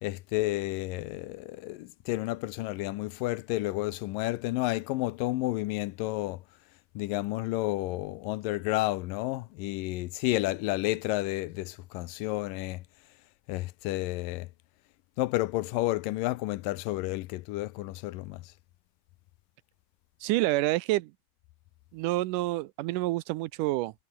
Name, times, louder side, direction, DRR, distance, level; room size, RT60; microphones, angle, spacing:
voice 1, 0.0-6.4 7.0-12.8 13.5-14.5 15.2-18.5, left 18 dB, 80° left, 2.4 m, -31 dB
voice 2, 20.2-21.1 21.9-23.9, right 18 dB, 80° right, 2.1 m, -28 dB
omnidirectional pair, 3.9 m